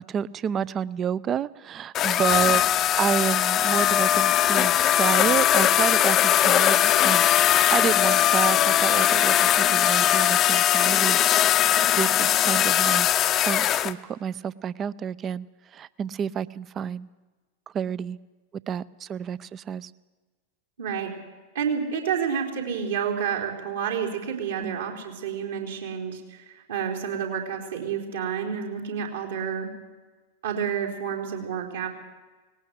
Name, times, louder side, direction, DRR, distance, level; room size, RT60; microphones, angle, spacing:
voice 1, 0.1-2.6 3.0-11.2 12.0-13.1 13.5-15.5 15.7-17.1 17.7-18.2 18.7-19.9 24.6-24.8, right 8 dB, 25° right, 20 dB, 0.5 m, -29 dB
sound 1, 1.9-13.9, left 11 dB, 30° left, 0.7 m, -20 dB
voice 2, 20.8-21.1 21.5-29.7 30.4-31.9, right 7 dB, 65° right, 1 dB, 3.9 m, -29 dB
19.0 x 18.0 x 8.2 m, 1.3 s
figure-of-eight pair, 90°, 0 cm